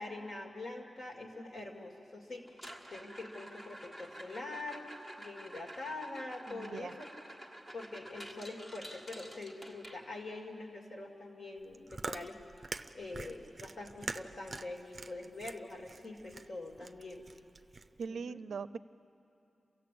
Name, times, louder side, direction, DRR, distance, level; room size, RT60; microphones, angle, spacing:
voice 1, 0.0-4.9 5.2-7.1 7.7-12.4 12.9-17.3 18.1-18.4, left 2 dB, 55° left, 1 dB, 2.7 m, -44 dB
sound 1, 2.5-10.4 12.7-12.8 13.0-13.4 13.8-13.9 14.5-14.6 16.5-16.6, equal, 20° left, 1.5 m, -50 dB
voice 2, 6.5-6.9 18.0-18.8, right 5 dB, 80° right, 15 dB, 0.4 m, -40 dB
Chewing mastication, 11.6-18.1, right 3 dB, 30° right, 0.6 m, -45 dB
28.0 x 16.0 x 8.6 m, 2.8 s
wide cardioid pair, 155°, 0 cm